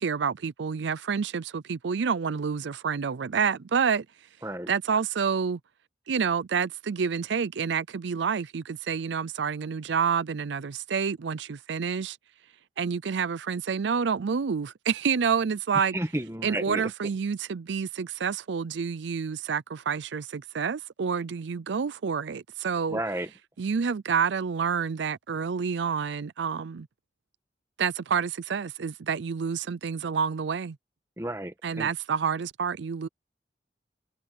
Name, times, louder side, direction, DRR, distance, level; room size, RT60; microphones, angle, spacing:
voice 1, 0.0-4.1 4.7-5.6 6.1-12.2 12.8-16.0 16.4-23.0 23.6-26.9 27.8-30.8 31.6-33.1, right 6 dB, 80° right, 0.5 m, -28 dB
voice 2, 15.7-16.8 22.9-23.3 31.2-31.9, right 1 dB, 15° right, 1.5 m, -32 dB
head